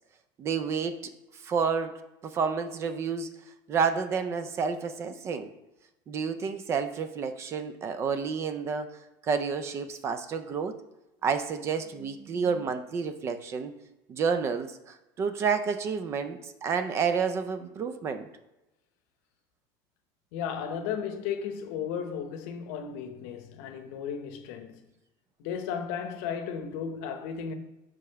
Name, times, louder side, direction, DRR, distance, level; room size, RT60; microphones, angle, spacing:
voice 1, 0.4-1.0 1.4-1.9 2.2-3.3 3.7-5.5 6.1-8.9 9.3-10.8 11.2-13.7 14.1-18.3, right 6 dB, 30° right, 0.4 m, -30 dB
voice 2, 20.3-24.8 25.4-27.5, left 7 dB, 70° left, 0.7 m, -34 dB
5.2 x 3.5 x 5.6 m
cardioid pair, 165°, 10 cm